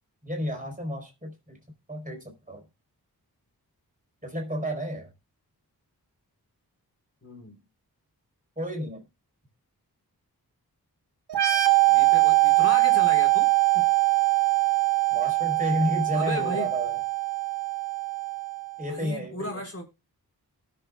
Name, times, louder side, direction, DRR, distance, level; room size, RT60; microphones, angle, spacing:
voice 1, 0.2-1.6 1.9-2.6 4.2-5.1 8.6-9.0 15.1-17.0 18.8-19.6, equal, 20° right, 4.4 m, -31 dB
voice 2, 7.2-7.6 11.9-13.8 16.1-16.7 18.9-19.8, left 1 dB, 40° left, 4.7 m, -35 dB
sound 1, 11.3-18.8, right 22 dB, 85° right, 1.2 m, -22 dB
18.5 x 6.9 x 2.4 m
cardioid pair, 55°, 38 cm